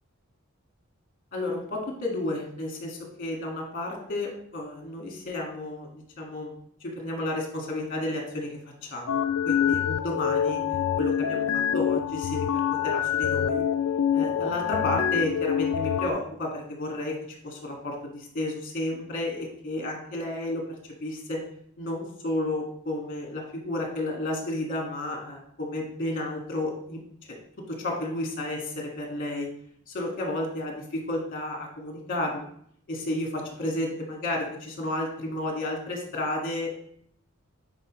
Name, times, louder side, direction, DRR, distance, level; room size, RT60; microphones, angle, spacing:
voice 1, 1.3-6.5 6.8-8.5 8.8-11.5 11.7-13.6 14.1-17.1 17.4-21.4 21.8-27.0 27.7-29.5 29.9-32.5 32.9-36.7, left 1 dB, 45° left, 0 dB, 1.9 m, -32 dB
sound 1, 9.1-16.1, left 8 dB, 70° left, 0.4 m, -26 dB
9.7 x 4.5 x 3.1 m, 0.65 s
head